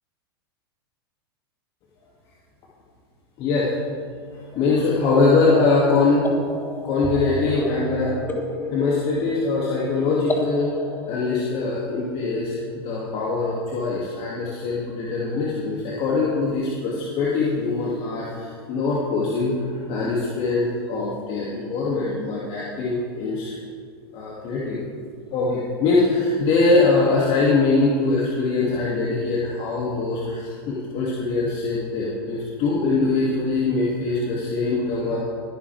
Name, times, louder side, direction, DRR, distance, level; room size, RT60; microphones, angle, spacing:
voice 1, 3.4-3.7 4.5-6.4 6.8-8.1 8.7-10.7 11.1-23.6 24.1-24.8 25.3-35.2, left 3 dB, 45° left, -6 dB, 2.4 m, -22 dB
sound 1, 4.5-11.2, left 2 dB, 15° left, 1.4 m, -34 dB
Bowed string instrument, 7.0-9.6, equal, 30° right, 1.8 m, -36 dB
20.5 x 10.5 x 3.4 m, 2.2 s
hypercardioid pair, 110°, 13 cm